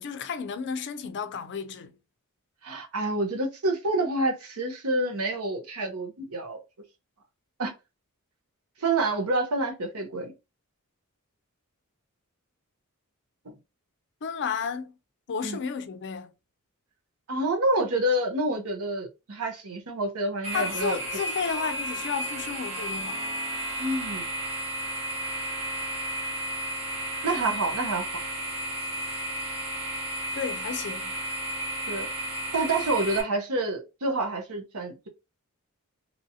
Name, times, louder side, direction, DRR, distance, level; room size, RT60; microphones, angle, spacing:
voice 1, 0.0-1.9 14.2-14.9 15.3-16.3 20.5-23.3 30.3-31.1, left 6 dB, 55° left, 0.5 m, -32 dB
voice 2, 2.6-6.6 7.6-7.7 8.8-10.3 13.4-13.5 15.4-15.6 17.3-21.0 23.8-24.2 27.2-28.2 31.9-32.1 32.5-35.1, right 2 dB, 80° right, 0.9 m, -28 dB
sound 1, 20.4-33.2, right 1 dB, 30° right, 1.0 m, -33 dB
3.0 x 2.7 x 2.7 m
head